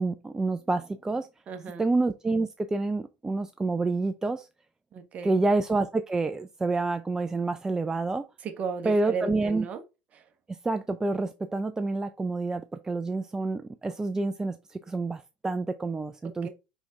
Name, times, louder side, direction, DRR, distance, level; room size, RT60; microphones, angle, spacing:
voice 1, 0.0-1.3 1.8-4.5 5.2-8.3 8.8-9.7 10.6-16.5, right 3 dB, 15° right, 0.5 m, -28 dB
voice 2, 1.5-1.9 4.9-5.4 8.4-9.8 10.1-10.2 16.4-16.5, right 5 dB, 35° right, 1.3 m, -35 dB
5.1 x 5.0 x 3.7 m
hypercardioid pair, 75°, 4 cm